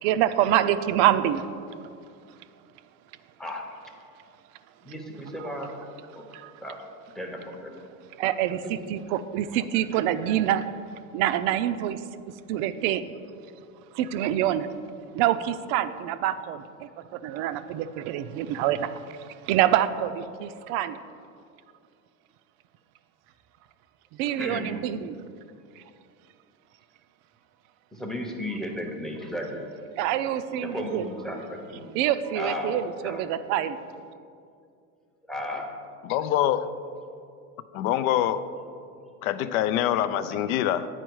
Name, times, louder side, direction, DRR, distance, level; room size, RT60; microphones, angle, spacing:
voice 1, 0.0-1.5 6.3-6.5 8.2-10.7 11.1-12.0 12.5-13.0 13.9-14.7 15.1-16.9 17.2-21.0 24.2-25.1 30.0-31.1 31.9-33.8, right 11 dB, 60° right, 12 dB, 0.5 m, -26 dB
voice 2, 3.4-3.7 4.8-5.8 6.1-6.3 6.6-6.8 7.1-7.8 8.6-8.9 24.4-24.8 27.9-29.7 30.5-31.9 32.3-33.3 35.3-35.7 40.3-40.4, left 1 dB, ahead, 2 dB, 0.7 m, -35 dB
voice 3, 36.0-36.7 37.7-38.4 39.2-40.9, left 11 dB, 80° left, 13 dB, 0.5 m, -25 dB
9.0 x 4.5 x 4.6 m, 2.4 s
supercardioid pair, 125°, 41 cm